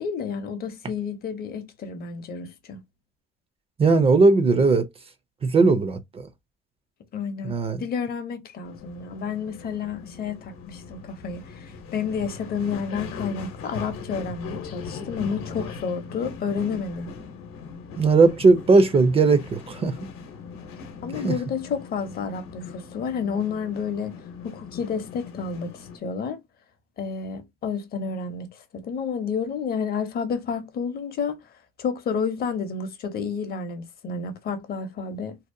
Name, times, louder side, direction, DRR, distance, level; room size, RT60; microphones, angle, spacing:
voice 1, 0.0-2.8 7.1-7.5 7.8-17.1 21.0-24.2 24.4-26.4 27.0-31.4 31.8-35.4, left 6 dB, 45° left, 0.6 m, -30 dB
voice 2, 3.8-4.9 5.4-6.3 7.4-7.8 18.0-19.9 21.2-21.4, right 3 dB, 30° right, 0.4 m, -18 dB
sound 1, 8.6-26.0, left 5 dB, 80° left, 0.8 m, -40 dB
2.7 x 2.0 x 2.5 m
cardioid pair, 115°, 21 cm